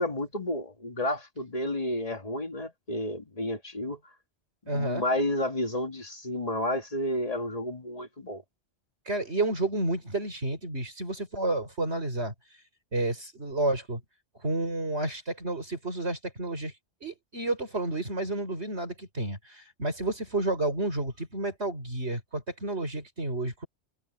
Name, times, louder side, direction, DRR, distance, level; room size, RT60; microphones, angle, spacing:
voice 1, 0.0-4.0 4.7-8.4, left 1 dB, 35° left, 2.2 m, -31 dB
voice 2, 4.7-5.1 9.1-12.3 12.9-14.0 14.4-16.7 17.0-23.7, right 2 dB, 75° right, 6.0 m, -30 dB
omnidirectional pair, 1.1 m